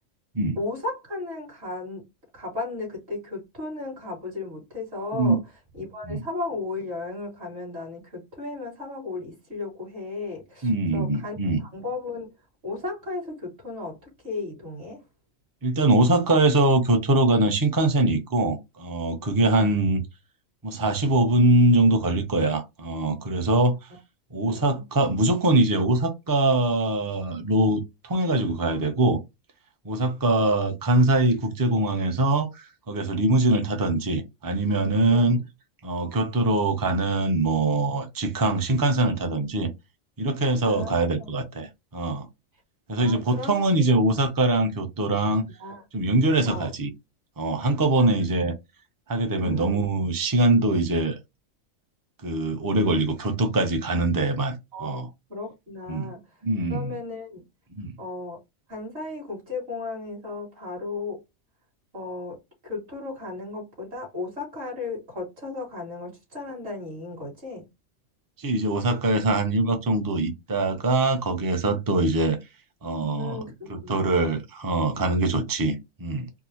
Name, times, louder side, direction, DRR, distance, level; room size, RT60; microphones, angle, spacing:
voice 1, 0.6-2.1 2.3-5.4 5.7-12.3 12.6-15.1 19.5-19.7 23.9-24.0 24.4-24.8 35.1-35.4 40.6-41.3 43.0-43.9 45.6-45.8 46.5-46.7 48.0-48.1 49.3-49.8 54.7-55.0 55.3-56.4 56.7-57.4 58.0-58.4 58.7-61.2 61.9-67.7 73.0-74.4, left 3 dB, 55° right, 2.5 m, -35 dB
voice 2, 10.6-11.6 15.6-20.0 20.6-23.8 24.3-29.2 29.8-35.4 35.8-39.7 40.2-42.3 42.9-45.4 45.9-46.9 47.4-48.5 49.1-51.1 52.2-54.6 54.8-55.1 55.9-56.1 56.4-56.9 57.8-58.0 68.4-72.4 72.8-73.4 73.7-76.3, right 2 dB, 25° right, 0.5 m, -23 dB
4.5 x 2.0 x 2.8 m
omnidirectional pair, 1.3 m